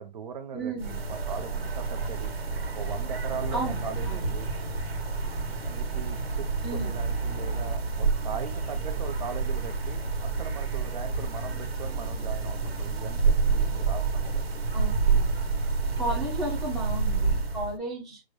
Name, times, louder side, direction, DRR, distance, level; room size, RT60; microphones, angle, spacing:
voice 1, 0.0-2.3 2.7-4.5 5.6-14.6 16.1-16.2, right 6 dB, 45° right, 0.8 m, -40 dB
voice 2, 0.5-1.0 3.5-3.7 4.0-4.2 6.6-6.9 14.7-15.3 16.0-18.2, right 2 dB, ahead, 0.7 m, -33 dB
sound 1, 0.8-17.7, right 4 dB, 85° right, 1.5 m, -29 dB
5.8 x 2.6 x 3.2 m
hypercardioid pair, 160°, 30 cm